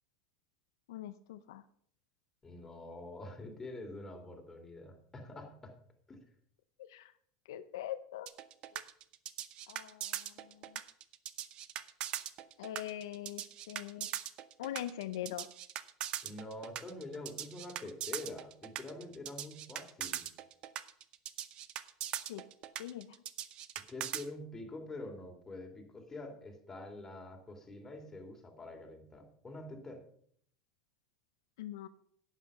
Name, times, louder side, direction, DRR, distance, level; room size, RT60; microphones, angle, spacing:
voice 1, 0.9-1.6 6.9-7.1 7.5-8.3 9.7-10.3 10.7-10.8 12.6-14.1 14.6-15.5 22.3-22.4 22.8-23.1 31.6-31.9, left 12 dB, 80° left, 10 dB, 0.6 m, -42 dB
voice 2, 2.4-5.7 6.1-6.2 16.2-20.3 23.9-30.0, left 2 dB, 20° left, 2 dB, 2.9 m, -46 dB
sound 1, 8.3-24.2, right 12 dB, 50° right, 0.8 m, -41 dB
11.5 x 8.4 x 5.5 m, 0.63 s
supercardioid pair, 105°, 2 cm